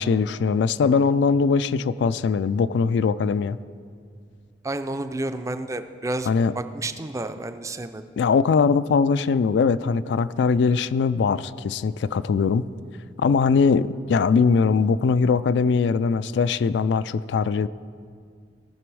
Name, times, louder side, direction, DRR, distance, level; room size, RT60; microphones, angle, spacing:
voice 1, 0.0-3.6 6.3-6.5 8.2-12.7 13.2-17.7, left 5 dB, 80° left, 15 dB, 0.3 m, -21 dB
voice 2, 4.6-6.3 6.6-8.0, right 2 dB, 20° right, 9 dB, 0.4 m, -30 dB
18.0 x 6.0 x 4.7 m, 2.1 s
head